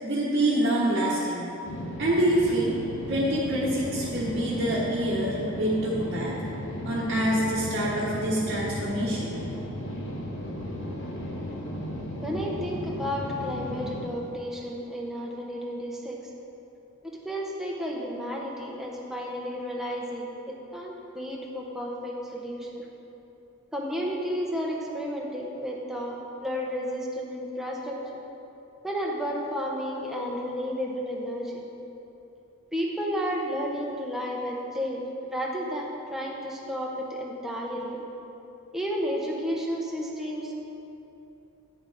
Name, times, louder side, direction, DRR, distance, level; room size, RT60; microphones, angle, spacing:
voice 1, 0.0-1.4 2.0-2.8 3.1-6.3 6.8-9.3, right 1 dB, 50° right, -8 dB, 1.1 m, -26 dB
sound 1, 1.6-14.1, left 1 dB, 60° left, 1.1 m, -35 dB
voice 2, 12.2-16.2 17.0-22.9 23.7-28.2 28.8-31.6 32.7-35.0 35.3-38.0 38.7-40.5, equal, ahead, -3 dB, 0.9 m, -32 dB
9.1 x 7.0 x 4.0 m, 2.9 s
head